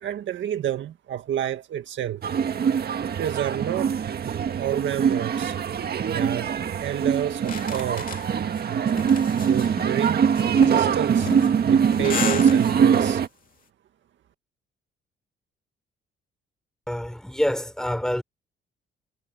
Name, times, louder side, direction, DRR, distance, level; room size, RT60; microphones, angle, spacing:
voice 1, 0.0-2.2 3.2-4.0 4.6-5.6 6.1-8.1 8.6-8.8 9.3-11.3 11.7-13.2, right 10 dB, 70° right, 2.0 m, -30 dB
sound 1, 2.2-13.3, right 7 dB, 50° right, 1.8 m, -23 dB
sound 2, 7.4-13.0, left 6 dB, 45° left, 2.8 m, -33 dB
voice 2, 16.9-18.2, equal, 5° left, 3.9 m, -26 dB
cardioid pair, 90°, 20 cm